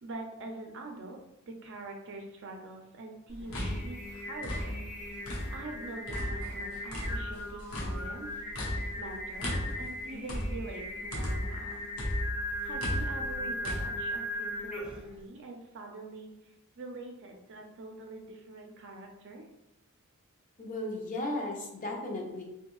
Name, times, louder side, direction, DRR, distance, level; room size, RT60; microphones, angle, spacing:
voice 1, 0.0-4.8 5.5-8.4 9.0-11.8 12.6-19.4, right 2 dB, 60° right, 2 dB, 0.5 m, -44 dB
sound 1, 3.3-5.7 6.1-11.6 12.0-13.8, equal, 80° left, 0.9 m, -35 dB
Singing, 3.4-15.1, left 1 dB, 5° right, 0.6 m, -38 dB
voice 2, 20.6-22.4, left 1 dB, 40° left, 0 dB, 0.5 m, -35 dB
2.6 x 2.2 x 3.0 m, 0.88 s
head